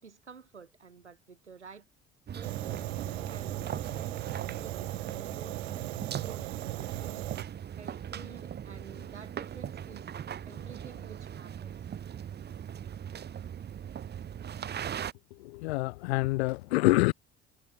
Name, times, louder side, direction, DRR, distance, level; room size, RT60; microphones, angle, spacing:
voice 1, 0.0-1.9 2.3-2.9 3.3-7.3 7.8-10.1 10.5-11.8, right 5 dB, 85° right, 3.6 m, -51 dB
sound 1, 2.3-15.1, right 9 dB, 30° right, 0.9 m, -39 dB
Fire, 2.4-7.4, right 21 dB, 65° right, 1.1 m, -38 dB
voice 2, 15.4-17.1, left 21 dB, 70° left, 0.5 m, -26 dB
figure-of-eight pair, 55°, 34 cm